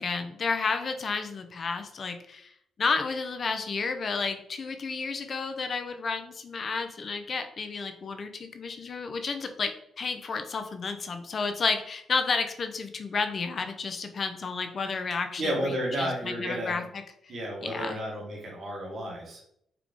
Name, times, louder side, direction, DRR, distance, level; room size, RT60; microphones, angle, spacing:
voice 1, 0.0-2.5 2.8-16.8 17.6-18.0, left 4 dB, 50° left, 7 dB, 0.6 m, -31 dB
voice 2, 15.4-16.8 17.3-19.4, equal, 55° right, -2 dB, 1.5 m, -32 dB
4.7 x 2.4 x 3.7 m, 0.71 s
supercardioid pair, 60°, 0 cm